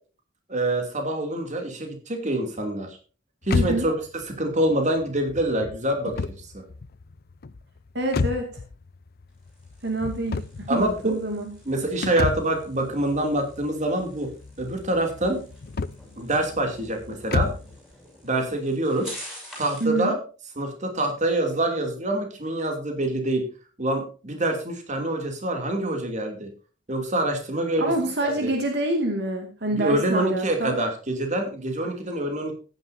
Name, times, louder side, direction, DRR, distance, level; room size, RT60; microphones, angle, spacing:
voice 1, 0.5-3.0 3.5-4.0 4.3-6.6 10.7-11.2 11.7-14.3 14.6-15.4 16.2-17.5 18.2-19.1 19.6-20.2 20.6-23.4 23.8-26.5 26.9-27.9 28.2-28.5 29.7-32.5, right 1 dB, 40° right, 4 dB, 2.8 m, -26 dB
sound 1, 3.4-17.8, left 4 dB, 55° left, 0.5 m, -32 dB
voice 2, 3.5-3.9 7.9-8.5 9.8-11.5 19.8-20.1 27.8-30.8, right 2 dB, 60° right, 4 dB, 2.1 m, -27 dB
sound 2, 9.3-20.0, equal, 5° right, 7.3 m, -47 dB
15.0 x 10.0 x 2.7 m, 0.35 s
head